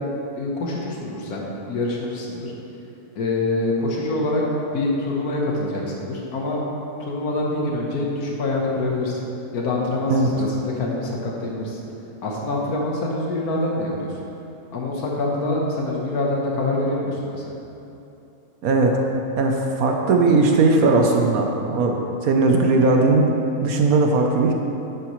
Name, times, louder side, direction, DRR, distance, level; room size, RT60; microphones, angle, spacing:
voice 1, 0.4-2.5 3.2-4.4 4.7-6.6 7.0-9.2 9.5-11.8 12.2-14.1 14.7-17.6, left 2 dB, 90° left, -2 dB, 1.6 m, -25 dB
voice 2, 18.6-19.0 19.4-23.3 23.6-24.5, right 3 dB, 75° right, 2 dB, 1.2 m, -18 dB
10.0 x 8.4 x 3.1 m, 2.9 s
omnidirectional pair, 1.5 m